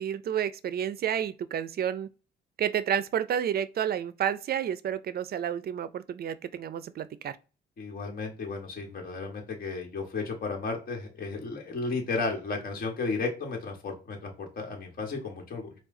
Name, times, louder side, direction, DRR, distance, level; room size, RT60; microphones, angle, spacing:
voice 1, 0.0-2.1 2.6-7.4, right 9 dB, 50° right, 0.4 m, -30 dB
voice 2, 7.8-15.7, left 3 dB, 50° left, 1.6 m, -34 dB
4.7 x 2.4 x 3.7 m
cardioid pair, 90°, 20 cm